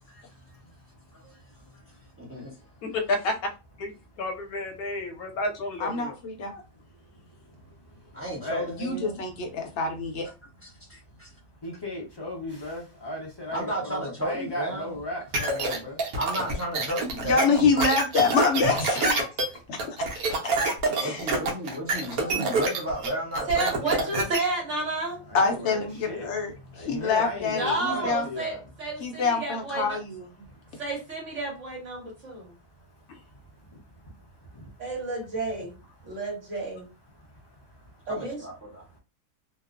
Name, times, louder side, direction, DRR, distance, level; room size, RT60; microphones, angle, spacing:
voice 1, 2.2-2.5 8.1-9.2 10.6-11.3 13.5-15.0 16.1-17.7 21.0-24.3 38.1-38.8, right 1 dB, 15° right, 0.6 m, -33 dB
voice 2, 4.2-6.1, left 1 dB, 80° left, 1.1 m, -32 dB
voice 3, 5.8-6.6 8.8-10.3 17.2-19.3 19.7-19.8 20.4-20.5 20.9-21.3 22.2-22.4 25.3-28.3 29.0-30.3, left 4 dB, 60° left, 0.8 m, -26 dB
voice 4, 11.6-16.0 25.3-26.3 26.8-28.6, left 1 dB, 30° left, 0.4 m, -36 dB
sound 1, 15.3-24.4, right 3 dB, 75° right, 1.1 m, -27 dB
voice 5, 23.5-25.2 27.5-30.0 30.8-32.5 34.8-35.8 36.0-36.9 38.1-38.4, right 3 dB, 55° right, 1.3 m, -31 dB
2.9 x 2.0 x 2.4 m
omnidirectional pair, 1.6 m